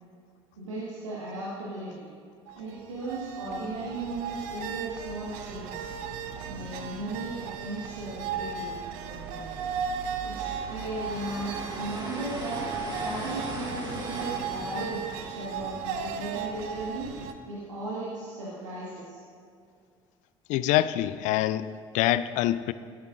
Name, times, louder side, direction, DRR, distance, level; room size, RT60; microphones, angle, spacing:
voice 1, 0.6-2.1 2.6-5.9 6.4-8.7 9.0-9.5 10.2-12.6 13.0-17.1 17.5-19.2, right 2 dB, 80° right, -8 dB, 1.5 m, -36 dB
sound 1, 2.5-17.3, right 6 dB, 60° right, 0.6 m, -36 dB
Motor of a Ship, 8.6-17.3, right 1 dB, 30° right, 1.9 m, -41 dB
voice 2, 20.5-22.7, left 13 dB, 55° left, 15 dB, 0.4 m, -25 dB
12.0 x 10.0 x 2.5 m, 2.2 s
figure-of-eight pair, 60°, 16 cm